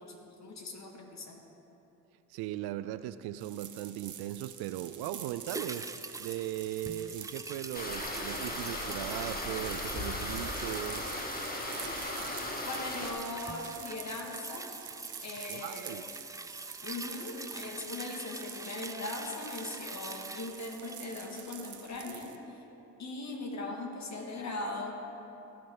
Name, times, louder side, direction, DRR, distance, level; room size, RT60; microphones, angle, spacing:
voice 1, 0.0-1.4 12.6-14.7 15.2-16.0 16.8-22.6 23.0-24.9, left 2 dB, 40° left, 1 dB, 2.1 m, -40 dB
voice 2, 2.3-5.9 6.2-11.0 15.5-16.1, right 13 dB, 65° right, 13 dB, 0.5 m, -38 dB
sound 1, 3.4-22.4, right 9 dB, 45° right, 1.1 m, -48 dB
sound 2, 5.5-22.0 22.3-22.4, right 3 dB, 10° right, 0.5 m, -45 dB
sound 3, 7.7-13.1, left 1 dB, 20° left, 1.9 m, -37 dB
16.5 x 6.6 x 4.0 m, 3.0 s
hypercardioid pair, 55°, 41 cm